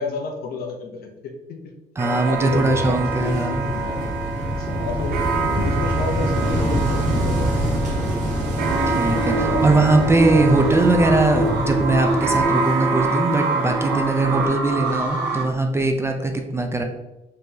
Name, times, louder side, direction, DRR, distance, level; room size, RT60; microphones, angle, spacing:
voice 1, 0.0-1.6 2.2-4.1 4.6-5.3 5.6-7.8 9.3-9.7, left 4 dB, 65° left, 2 dB, 0.8 m, -31 dB
voice 2, 2.0-3.7 8.9-16.8, right 2 dB, 15° right, 4 dB, 0.4 m, -21 dB
sound 1, 2.0-14.5, right 4 dB, 65° right, 0.6 m, -28 dB
Wind / Waves surf, 2.5-12.5, right 1 dB, 45° right, 1.5 m, -26 dB
sound 2, 8.6-15.4, right 2 dB, 85° right, 1.0 m, -24 dB
4.1 x 3.2 x 2.8 m, 0.97 s
cardioid pair, 110°, 17 cm